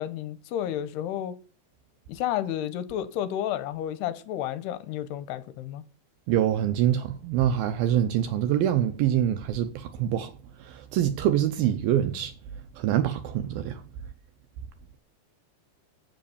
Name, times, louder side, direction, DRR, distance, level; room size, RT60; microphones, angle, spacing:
voice 1, 0.0-1.4 2.1-5.8, left 11 dB, 80° left, 2.7 m, -31 dB
voice 2, 6.3-10.3 10.6-12.3 12.7-13.8, right 11 dB, 80° right, 2.2 m, -25 dB
8.0 x 7.6 x 6.9 m
omnidirectional pair, 4.9 m